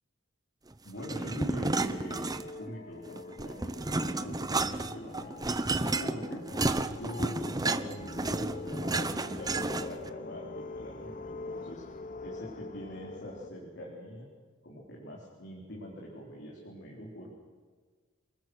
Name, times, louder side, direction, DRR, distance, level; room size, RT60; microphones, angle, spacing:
voice 1, 0.8-5.4 6.0-6.4 6.9-11.8 12.2-14.3 14.6-17.3, equal, 55° left, -2 dB, 4.0 m, -43 dB
sound 1, 0.9-13.5, left 2 dB, 40° left, 1.0 m, -44 dB
sound 2, 1.0-2.7 3.1-10.1, right 2 dB, 20° right, 0.8 m, -32 dB
28.5 x 21.5 x 6.3 m, 1.5 s
head